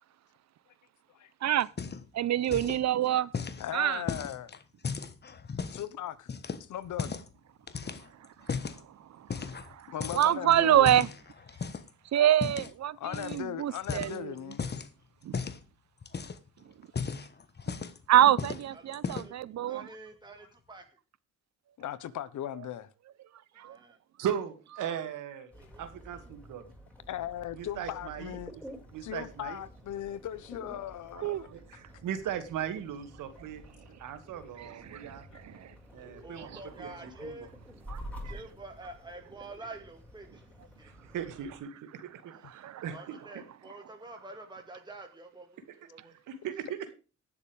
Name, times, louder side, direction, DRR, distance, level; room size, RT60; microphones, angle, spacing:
sound 1, 1.6-2.2 2.4-2.8 3.3-5.9 6.3-7.3 7.7-8.8 9.3-9.8 10.0-11.9 12.4-12.7 13.1-13.4 13.8-14.9 15.3-15.6 16.0-16.5 16.8-18.1 18.4-18.7 18.9-19.4, left 5 dB, 35° left, 1.2 m, -36 dB
voice 1, 2.1-3.3 3.7-4.0 9.2-11.1 12.1-14.3 18.1-19.9 23.6-23.8 31.2-31.5 34.6-35.7 36.4-36.6 37.9-38.0 38.2-38.4 42.4-42.8, right 11 dB, 60° right, 0.8 m, -26 dB
voice 2, 3.6-4.5 5.7-6.3 6.6-7.1 9.9-11.0 13.0-14.6 20.4-20.5 21.8-22.9 27.1-28.5 29.0-31.5 34.9-35.0 35.3-35.4, left 11 dB, 70° left, 1.2 m, -38 dB
voice 3, 18.7-19.3 19.7-20.8 23.6-24.0 25.5-25.8 36.2-37.5 38.2-40.4 40.8-40.9 42.8-46.1, right 2 dB, 15° right, 2.0 m, -47 dB
voice 4, 24.2-25.5 25.8-26.6 27.5-28.6 28.9-29.6 31.5-33.7 34.0-35.3 35.9-37.5 40.8-41.7 42.0-43.4 46.0-46.9, right 9 dB, 80° right, 2.3 m, -38 dB
sound 2, 25.5-41.6, equal, 5° left, 5.2 m, -50 dB
19.0 x 7.2 x 3.5 m
cardioid pair, 90°, 31 cm